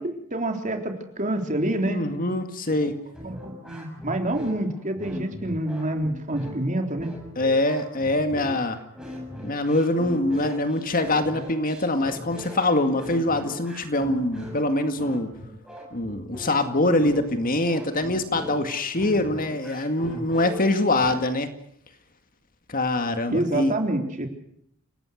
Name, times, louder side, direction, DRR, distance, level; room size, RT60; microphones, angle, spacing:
voice 1, 0.0-2.0 3.2-7.1 23.3-24.3, right 1 dB, 35° right, 4 dB, 3.7 m, -27 dB
voice 2, 1.9-3.0 7.4-8.8 9.4-15.3 15.9-21.5 22.7-23.7, left 2 dB, 40° left, 7 dB, 2.1 m, -24 dB
sound 1, 3.1-21.2, left 1 dB, 5° right, 7.2 m, -40 dB
28.5 x 18.0 x 6.5 m, 0.70 s
head